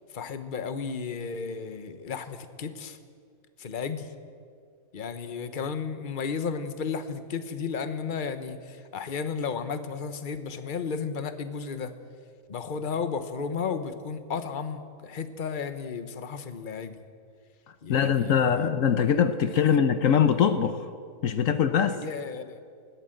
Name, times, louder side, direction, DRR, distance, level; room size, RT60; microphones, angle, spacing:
voice 1, 0.1-3.0 3.6-4.1 4.9-11.9 12.5-17.0 17.8-18.7 19.6-19.7 21.9-22.6, left 5 dB, 40° left, 10 dB, 1.1 m, -33 dB
voice 2, 17.9-20.9 21.2-22.0, left 8 dB, 70° left, 10 dB, 1.1 m, -22 dB
20.0 x 17.0 x 7.8 m, 2.2 s
omnidirectional pair, 1.5 m